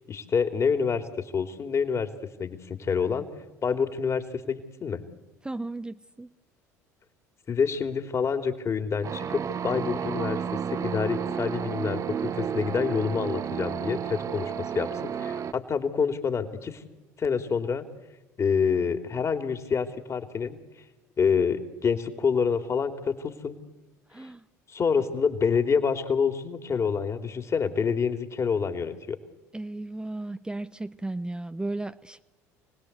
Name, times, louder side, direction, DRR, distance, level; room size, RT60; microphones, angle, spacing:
voice 1, 0.0-2.1 2.4-3.3 3.6-5.0 7.5-16.8 17.2-17.8 18.4-20.6 21.2-23.6 24.7-29.2, left 6 dB, 35° left, 7 dB, 3.1 m, -27 dB
voice 2, 5.4-6.3 24.1-24.4 29.5-32.2, right 2 dB, 10° right, 10 dB, 0.9 m, -35 dB
sound 1, 9.0-15.5, right 8 dB, 40° right, 1.3 m, -32 dB
29.5 x 20.0 x 8.2 m, 1.1 s
figure-of-eight pair, 65°, 9 cm